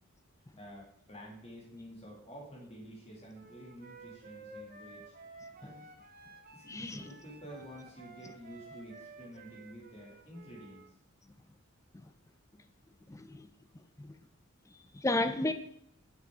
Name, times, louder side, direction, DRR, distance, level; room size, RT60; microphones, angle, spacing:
voice 1, 0.6-5.1 5.6-5.9 6.5-10.9, equal, 30° left, 2.4 m, -49 dB
Wind instrument woodwind instrument, 3.3-10.9, right 3 dB, 45° right, 0.9 m, -53 dB
voice 2, 6.7-7.0 11.9-12.0 13.1-13.5 14.0-14.1 15.0-15.5, left 2 dB, 15° left, 0.4 m, -32 dB
6.9 x 6.7 x 3.6 m
head